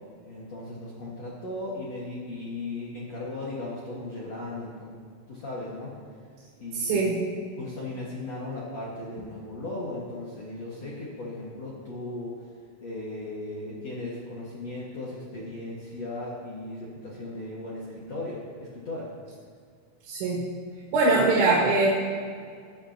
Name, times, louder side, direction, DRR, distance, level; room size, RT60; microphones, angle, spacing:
voice 1, 0.2-5.9 6.6-7.2 7.6-12.3 12.8-19.1, left 2 dB, 60° left, -7 dB, 1.7 m, -37 dB
voice 2, 6.7-7.2 20.1-20.5 20.9-21.9, right 3 dB, 75° right, -5 dB, 4.1 m, -22 dB
22.5 x 8.9 x 3.0 m, 2.1 s
omnidirectional pair, 5.9 m